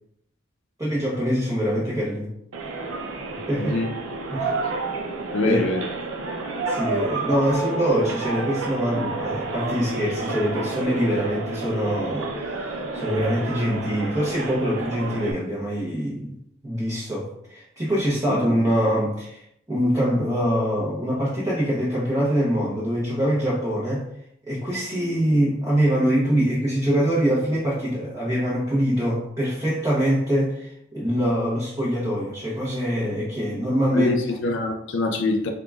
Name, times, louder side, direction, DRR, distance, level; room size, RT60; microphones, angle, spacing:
voice 1, 0.8-2.3 3.5-3.8 4.3-4.5 5.4-5.6 6.7-12.3 12.9-16.3 16.6-24.1 24.5-34.2, equal, 20° right, -7 dB, 0.8 m, -24 dB
sound 1, 2.5-15.3, right 3 dB, 80° right, 0.6 m, -30 dB
voice 2, 3.6-3.9 5.3-5.9 18.3-18.5 33.9-35.5, left 2 dB, 65° left, 4 dB, 0.4 m, -24 dB
3.7 x 3.6 x 2.3 m, 0.74 s
head